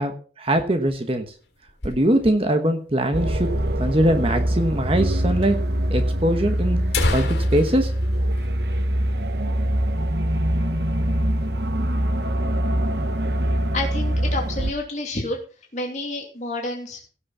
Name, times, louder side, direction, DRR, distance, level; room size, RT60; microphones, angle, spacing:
voice 1, 0.0-1.3 1.8-3.5 3.8-5.6 5.9-6.8 7.1-7.9, right 1 dB, 30° right, 6 dB, 1.2 m, -22 dB
sound 1, 0.7-2.6 2.9-3.0 3.2-3.3 4.0-4.1 5.0-5.1 5.4-5.5 6.3-6.4 6.7-9.3 9.6-9.8 10.2-10.4 10.8-11.4, left 2 dB, 75° left, 3.7 m, -30 dB
sound 2, 3.1-14.7, right 1 dB, 65° right, 1.2 m, -23 dB
voice 2, 13.7-15.4 15.7-17.2, left 2 dB, 40° left, 0 dB, 2.9 m, -29 dB
17.0 x 6.5 x 5.6 m, 0.40 s
head